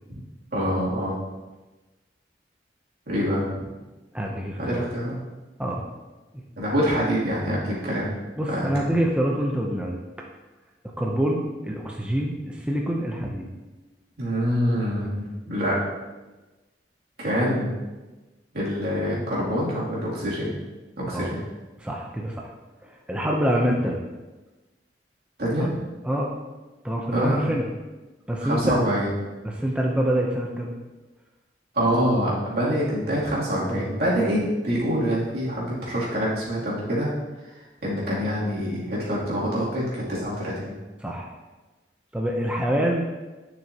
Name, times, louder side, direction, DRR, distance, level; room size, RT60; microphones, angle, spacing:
voice 1, 0.5-1.1 3.1-3.5 4.6-5.2 6.6-8.2 8.5-8.7 14.2-15.7 17.2-17.7 18.5-20.5 21.0-21.4 25.4-25.7 27.1-27.6 28.4-29.1 31.7-37.1 37.4-37.5 37.8-40.7, equal, 65° right, -7 dB, 2.7 m, -25 dB
voice 2, 4.1-4.9 5.6-5.9 8.4-10.0 11.0-13.5 21.1-21.3 21.8-22.5 22.8-24.0 26.0-26.3 26.8-27.6 28.3-28.8 29.4-30.7 34.2-34.4 41.0-41.4 42.1-43.1, equal, 5° right, -1 dB, 0.7 m, -26 dB
10.5 x 6.1 x 2.9 m, 1.2 s
head